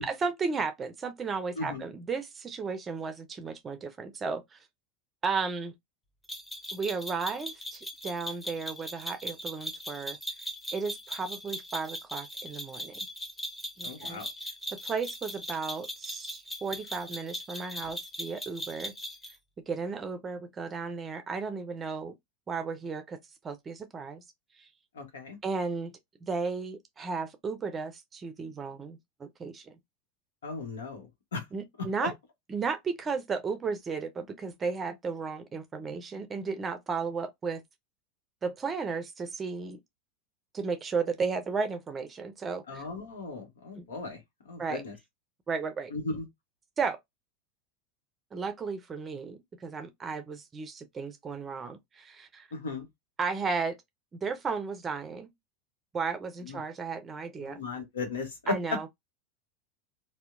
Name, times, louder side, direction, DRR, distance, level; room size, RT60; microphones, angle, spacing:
voice 1, 0.0-4.7 5.2-5.7 6.7-10.2 10.7-12.9 13.8-14.2 14.7-18.9 19.7-22.1 22.5-23.2 23.4-24.2 24.6-24.7 25.4-25.9 26.2-29.7 31.5-32.1 32.5-37.6 38.4-39.8 40.5-42.9 43.8-43.9 44.6-44.8 45.5-45.9 46.8-47.0 48.3-52.5 53.2-53.8 54.2-55.3 55.9-57.6 58.5-58.9, right 5 dB, 25° right, 0.5 m, -34 dB
sound 1, 6.3-19.3, equal, 10° left, 0.9 m, -39 dB
voice 2, 13.8-14.3 24.9-25.4 30.4-31.4 31.8-32.1 42.7-44.2 44.4-44.9 45.9-46.3 52.5-52.9 56.4-56.6 57.4-58.5, left 3 dB, 85° left, 0.9 m, -36 dB
2.7 x 2.1 x 2.4 m
hypercardioid pair, 95°, 0 cm